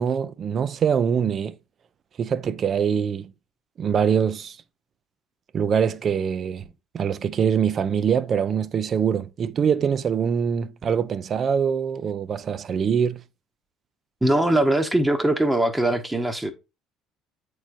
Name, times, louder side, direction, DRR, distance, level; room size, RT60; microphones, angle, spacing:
voice 1, 0.0-1.5 2.2-3.3 3.8-4.6 5.5-6.6 6.9-13.2, right 7 dB, 40° right, 0.5 m, -23 dB
voice 2, 14.2-16.5, right 1 dB, 10° right, 0.9 m, -21 dB
8.3 x 4.7 x 2.5 m
figure-of-eight pair, 60°, 0 cm